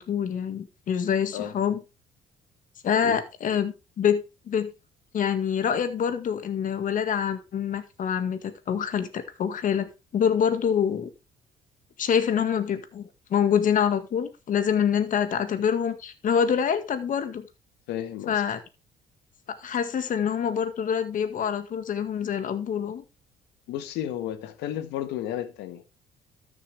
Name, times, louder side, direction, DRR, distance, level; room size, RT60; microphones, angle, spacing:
voice 1, 0.0-1.8 2.8-4.7 5.1-11.1 12.0-17.5 18.3-18.6 19.5-23.0, left 8 dB, 50° left, 1.9 m, -26 dB
voice 2, 17.9-18.4 23.7-25.8, left 11 dB, 90° left, 1.6 m, -32 dB
13.0 x 7.2 x 3.4 m
cardioid pair, 110°, 17 cm